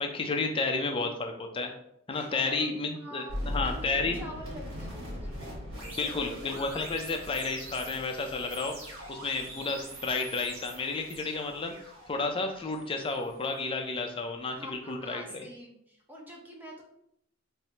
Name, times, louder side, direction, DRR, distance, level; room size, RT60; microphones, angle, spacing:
voice 1, 0.0-1.7 2.1-4.2 6.0-15.5, left 3 dB, 25° left, 4 dB, 0.4 m, -32 dB
voice 2, 2.1-6.3 14.5-16.8, equal, 10° right, -1 dB, 0.7 m, -46 dB
sound 1, 3.3-14.3, equal, 75° right, 1.2 m, -41 dB
4.5 x 2.0 x 2.8 m, 0.74 s
head